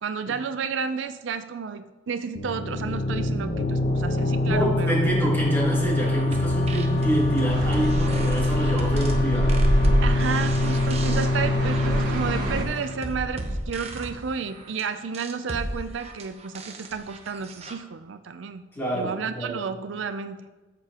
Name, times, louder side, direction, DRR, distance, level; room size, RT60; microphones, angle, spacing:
voice 1, 0.0-5.0 10.0-18.6 18.9-20.5, right 6 dB, 70° right, 10 dB, 0.4 m, -31 dB
sound 1, 2.4-13.8, left 2 dB, 50° left, 1.0 m, -25 dB
voice 2, 4.4-9.5 18.7-19.6, right 1 dB, 10° left, -6 dB, 3.0 m, -27 dB
sound 2, 5.8-17.7, right 1 dB, 35° right, 0.8 m, -35 dB
sound 3, 7.5-12.6, equal, 50° right, 1.6 m, -26 dB
13.5 x 6.9 x 2.9 m, 1.2 s
head